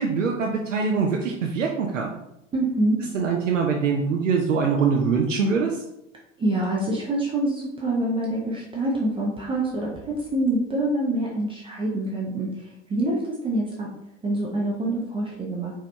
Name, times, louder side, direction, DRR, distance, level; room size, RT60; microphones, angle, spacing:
voice 1, 0.0-2.1 3.1-5.8, right 5 dB, 75° right, 1 dB, 0.6 m, -23 dB
voice 2, 2.5-3.0 6.4-12.5 12.9-13.9 14.2-15.7, right 1 dB, 15° right, -3 dB, 0.5 m, -25 dB
4.7 x 2.8 x 2.2 m, 0.84 s
figure-of-eight pair, 85°, 38 cm